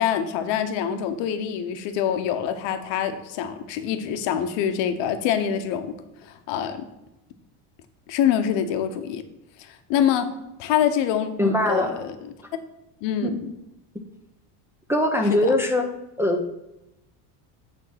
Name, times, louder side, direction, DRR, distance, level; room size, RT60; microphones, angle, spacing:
voice 1, 0.0-5.9 6.2-6.9 8.1-9.2 9.6-10.3 10.6-12.1 13.0-13.5 15.4-15.5, left 9 dB, 60° left, 9 dB, 0.9 m, -25 dB
voice 2, 11.4-12.0 13.2-13.3 14.9-15.9 16.2-16.5, left 1 dB, 5° right, 1 dB, 0.6 m, -22 dB
9.2 x 3.6 x 5.7 m, 0.91 s
supercardioid pair, 125°, 48 cm